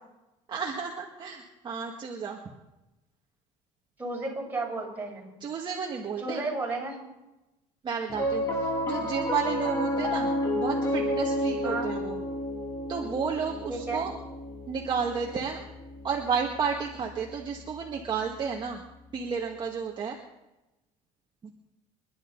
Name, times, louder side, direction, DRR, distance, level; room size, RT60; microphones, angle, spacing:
voice 1, 0.5-2.4 5.4-6.4 7.8-12.2 12.9-14.1 14.7-15.6 16.0-18.8 19.1-20.2 21.4-21.5, right 6 dB, 35° right, -1 dB, 1.9 m, -32 dB
voice 2, 4.0-5.3 6.2-7.0 11.6-11.9 13.7-14.1, right 3 dB, 15° right, -3 dB, 6.2 m, -33 dB
Piano, 8.1-18.6, left 1 dB, 25° left, 2.6 m, -32 dB
27.5 x 11.0 x 4.0 m, 0.98 s
cardioid pair, 120°, 13 cm